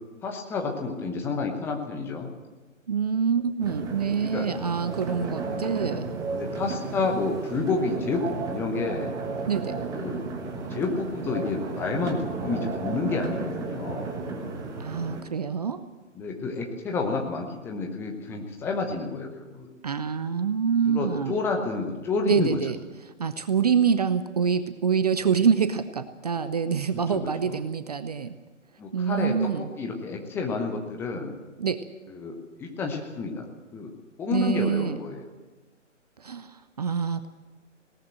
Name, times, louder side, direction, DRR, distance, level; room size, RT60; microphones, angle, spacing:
voice 1, 0.2-2.3 4.2-4.5 6.3-9.1 9.9-10.2 10.7-14.1 16.1-19.7 20.9-22.6 27.1-27.6 28.8-31.4 32.1-33.4 33.7-33.9 34.2-35.3, left 4 dB, 5° left, 2 dB, 0.9 m, -30 dB
voice 2, 2.9-6.1 9.5-9.8 14.8-15.8 19.8-21.4 22.2-22.8 23.2-28.3 28.9-29.7 31.6-31.8 34.3-35.0 36.2-37.3, right 6 dB, 30° right, 12 dB, 0.7 m, -26 dB
sound 1, 3.6-15.2, right 3 dB, 10° right, 1.3 m, -33 dB
20.0 x 18.0 x 7.6 m, 1.2 s
figure-of-eight pair, 135°, 38 cm